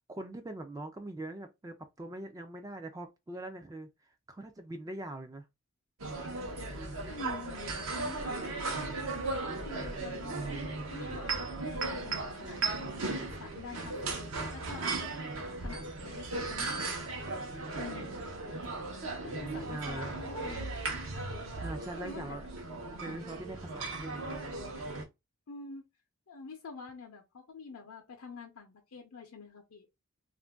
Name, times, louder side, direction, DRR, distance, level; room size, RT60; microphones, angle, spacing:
voice 1, 0.1-3.9 4.3-5.5 19.3-20.1 21.5-22.4 23.0-24.3, right 2 dB, 15° right, 0.3 m, -42 dB
sound 1, 6.0-25.0, right 3 dB, 65° right, 0.8 m, -37 dB
voice 2, 7.1-8.9 9.5-10.4 10.9-15.2 15.6-17.4 17.7-18.2 19.2-20.8 22.0-22.5 25.5-25.9 26.3-29.9, left 5 dB, 80° left, 0.6 m, -47 dB
2.5 x 2.2 x 3.3 m
head